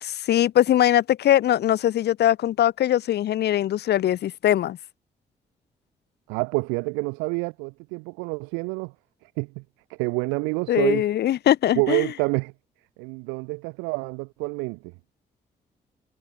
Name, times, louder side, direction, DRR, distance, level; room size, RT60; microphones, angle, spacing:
voice 1, 0.0-4.8 10.7-12.1, left 12 dB, 55° left, 0.7 m, -21 dB
voice 2, 6.3-8.9 9.4-9.6 9.9-11.1 11.7-12.5 13.0-14.8, right 33 dB, 75° right, 1.4 m, -27 dB
figure-of-eight pair, 40°, 20 cm